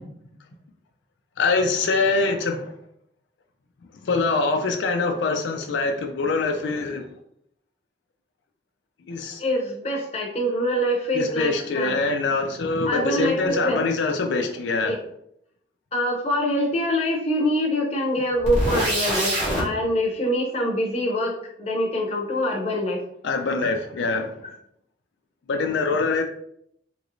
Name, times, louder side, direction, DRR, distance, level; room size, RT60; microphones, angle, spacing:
voice 1, 1.4-2.7 4.1-7.0 9.1-9.4 11.1-15.0 23.2-24.3 25.5-26.2, left 3 dB, 85° left, 4 dB, 0.4 m, -24 dB
voice 2, 9.4-12.0 12.9-13.8 14.8-15.0 15.9-23.0 23.6-23.7, equal, 35° left, -1 dB, 0.6 m, -25 dB
sound 1, 18.4-19.6, equal, 35° right, 1.4 m, -23 dB
3.0 x 2.9 x 2.5 m, 0.71 s
head